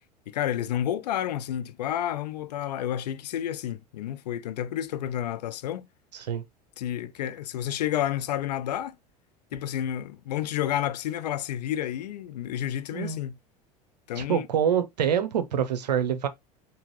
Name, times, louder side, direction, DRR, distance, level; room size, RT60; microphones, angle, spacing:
voice 1, 0.3-5.9 6.8-8.9 9.5-13.3 14.1-14.5, left 11 dB, 80° left, 0.5 m, -30 dB
voice 2, 6.1-6.4 12.9-13.2 14.2-16.3, right 8 dB, 85° right, 0.6 m, -26 dB
3.7 x 2.8 x 3.1 m
hypercardioid pair, 80°, 21 cm